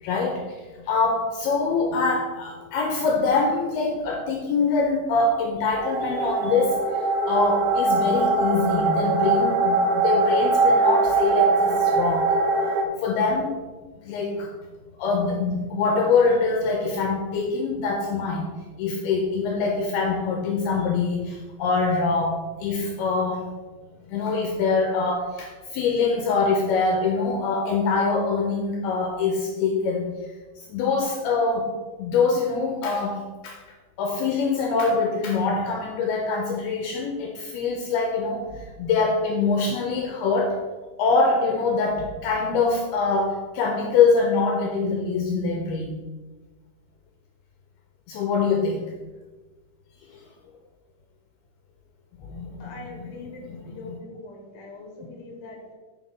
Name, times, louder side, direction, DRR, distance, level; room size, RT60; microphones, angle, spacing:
voice 1, 0.0-6.8 7.3-12.4 13.0-13.6 14.0-14.5 15.0-18.5 18.8-23.5 24.1-30.1 30.6-31.7 32.0-33.6 34.0-40.6 41.0-46.0 48.1-48.9 50.1-50.2 52.2-52.8 53.5-53.6 53.8-54.0, left 4 dB, 80° left, 2 dB, 2.4 m, -24 dB
sound 1, 5.8-12.8, right 3 dB, 85° right, 3.2 m, -22 dB
voice 2, 52.6-55.7, left 2 dB, 50° left, 0 dB, 1.3 m, -42 dB
7.7 x 5.7 x 5.2 m, 1.2 s
omnidirectional pair, 5.2 m